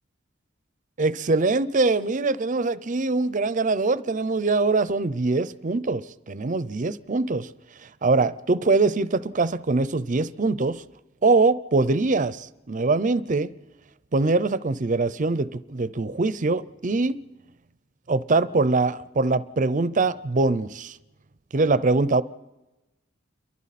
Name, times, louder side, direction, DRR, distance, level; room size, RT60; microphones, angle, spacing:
voice 1, 1.0-7.5 8.0-10.8 11.2-13.5 14.1-17.2 18.1-21.0 21.5-22.2, right 3 dB, 40° right, 0.6 m, -23 dB
29.5 x 23.0 x 4.2 m
head